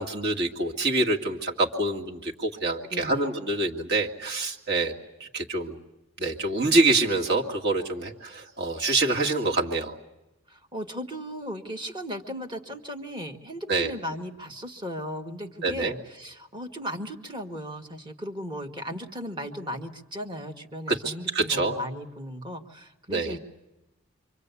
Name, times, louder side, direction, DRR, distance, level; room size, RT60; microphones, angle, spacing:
voice 1, 0.0-4.9 5.2-5.8 6.2-9.9 13.7-13.9 15.6-16.0 20.9-21.7 23.1-23.3, right 2 dB, 50° right, 0 dB, 2.4 m, -26 dB
voice 2, 2.9-3.3 10.5-23.4, equal, 20° right, 4 dB, 1.6 m, -36 dB
28.0 x 24.5 x 8.2 m, 0.94 s
head